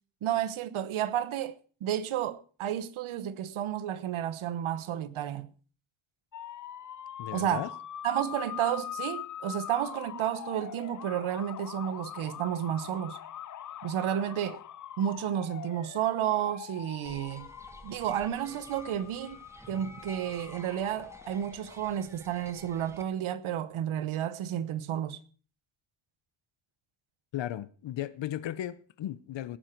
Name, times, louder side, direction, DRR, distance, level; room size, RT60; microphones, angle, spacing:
voice 1, 0.2-5.5 7.3-7.7 8.0-13.2 13.8-14.6 15.0-17.5 17.8-19.4 19.7-25.2, right 10 dB, 75° right, 1.1 m, -31 dB
sound 1, 6.3-21.8, left 10 dB, 40° left, 0.6 m, -43 dB
voice 2, 7.2-7.7 27.3-29.6, left 12 dB, 60° left, 0.9 m, -36 dB
sound 2, 17.0-23.0, right 1 dB, 5° right, 1.4 m, -51 dB
18.0 x 9.8 x 4.6 m
cardioid pair, 140°, 49 cm